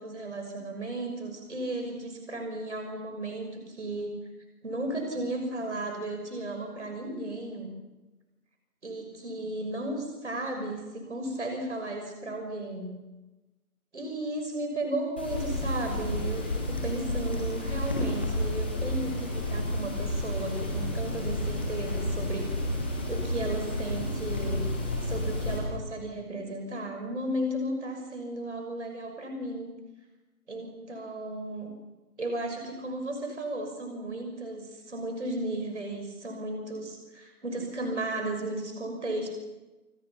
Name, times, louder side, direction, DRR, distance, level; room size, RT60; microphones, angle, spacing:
voice 1, 0.0-4.1 4.6-7.7 8.8-13.0 13.9-22.5 23.1-24.6 25.0-29.8 30.5-31.7 32.2-39.3, right 1 dB, 50° right, 4 dB, 6.2 m, -34 dB
sound 1, 15.2-25.6, left 1 dB, 5° left, 1.4 m, -31 dB
28.5 x 25.0 x 5.9 m, 1.1 s
figure-of-eight pair, 165°, 45 cm